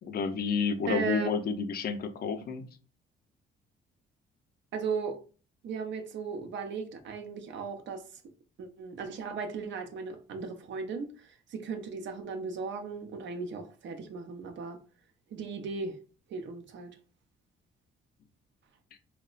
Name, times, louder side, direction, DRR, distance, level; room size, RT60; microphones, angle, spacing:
voice 1, 0.0-2.7, left 5 dB, 50° left, 0.4 m, -30 dB
voice 2, 0.9-1.3 4.7-5.2 5.6-8.0 8.6-14.8 15.3-16.0 16.3-17.0, right 5 dB, 70° right, 0.5 m, -36 dB
2.9 x 2.0 x 2.4 m
cardioid pair, 90°, 20 cm